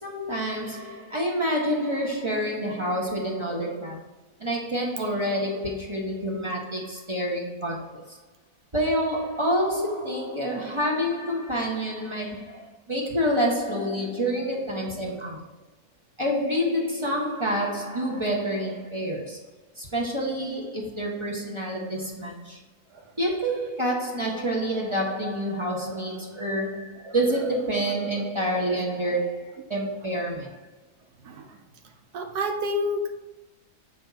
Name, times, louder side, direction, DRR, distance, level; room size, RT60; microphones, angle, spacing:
voice 1, 0.0-4.0 4.4-8.2 8.7-15.4 16.2-19.4 19.8-22.6 23.2-30.6, equal, 20° right, 1.2 m, -28 dB
voice 2, 32.1-33.2, left 1 dB, 80° right, 1.4 m, -28 dB
6.9 x 5.4 x 4.2 m
omnidirectional pair, 1.7 m